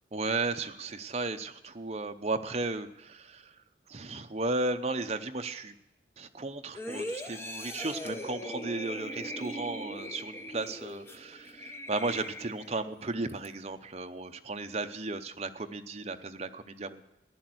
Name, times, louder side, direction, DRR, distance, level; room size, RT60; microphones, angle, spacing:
voice 1, 0.1-3.5 3.9-5.7 6.2-17.0, right 3 dB, 35° right, 6 dB, 0.8 m, -35 dB
sound 1, 6.7-12.9 13.3-13.5, left 1 dB, 15° left, 0.9 m, -40 dB
14.5 x 10.5 x 7.8 m, 0.92 s
head